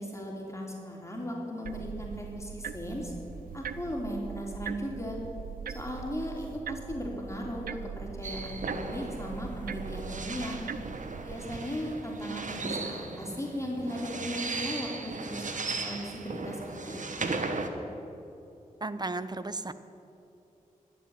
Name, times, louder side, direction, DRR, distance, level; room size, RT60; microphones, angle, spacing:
voice 1, 0.0-3.1 3.5-5.2 5.7-10.6 11.2-17.3, equal, 20° left, -2 dB, 3.1 m, -37 dB
sound 1, 1.6-11.6, right 7 dB, 80° right, 0.5 m, -41 dB
sound 2, 8.2-17.7, right 3 dB, 60° right, 1.2 m, -37 dB
voice 2, 18.8-19.7, right 2 dB, 30° right, 13 dB, 0.7 m, -34 dB
12.0 x 7.6 x 8.8 m, 2.8 s
cardioid pair, 40°, 15 cm